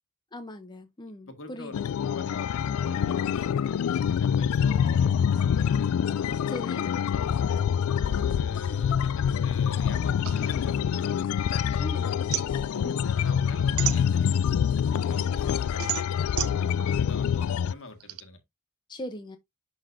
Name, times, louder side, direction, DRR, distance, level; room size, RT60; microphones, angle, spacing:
voice 1, 0.3-1.9 6.5-6.8 11.8-12.1 12.8-13.1 18.9-19.4, left 1 dB, 20° left, 0.7 m, -39 dB
voice 2, 1.2-5.9 6.2-7.6 7.9-12.1 12.7-18.4, left 2 dB, 65° left, 1.8 m, -44 dB
sound 1, 1.7-17.7, left 8 dB, 85° left, 0.3 m, -26 dB
sound 2, 4.9-12.9 14.0-15.9, left 2 dB, 40° left, 1.4 m, -53 dB
sound 3, 10.2-11.7 12.0-14.6 15.0-18.2, right 13 dB, 75° right, 0.6 m, -34 dB
11.0 x 4.0 x 2.6 m
head